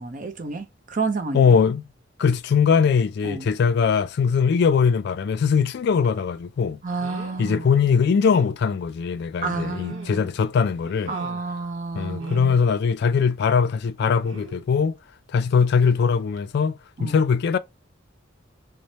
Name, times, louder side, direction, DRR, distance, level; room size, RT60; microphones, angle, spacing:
voice 1, 0.0-1.6 3.2-3.5 6.8-7.7 9.4-10.3 11.1-12.5 17.0-17.2, right 3 dB, 40° right, 0.6 m, -30 dB
voice 2, 1.3-1.9 2.2-6.8 7.4-11.1 11.9-15.0 15.3-17.6, left 6 dB, 55° left, 0.3 m, -21 dB
sound 1, 6.0-6.2 7.0-7.5 7.9-8.0 8.3-8.6 9.5-10.4 10.8-11.6 12.2-12.6 14.2-14.6 15.8-16.0 16.4-16.5, right 2 dB, 70° right, 0.9 m, -42 dB
4.0 x 2.1 x 3.1 m
head